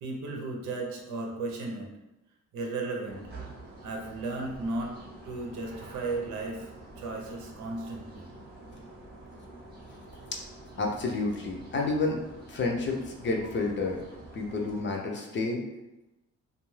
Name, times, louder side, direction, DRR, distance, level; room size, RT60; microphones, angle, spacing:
voice 1, 0.0-1.9 2.5-3.2 3.8-4.9 5.2-6.7 7.0-8.3, right 3 dB, 80° right, 0 dB, 0.7 m, -35 dB
sound 1, 3.0-14.8, right 2 dB, 35° right, 0.8 m, -47 dB
voice 2, 10.8-12.2 12.5-14.0 14.3-15.6, left 3 dB, 40° left, 0 dB, 0.6 m, -30 dB
2.3 x 2.3 x 3.1 m, 0.97 s
cardioid pair, 90°, 30 cm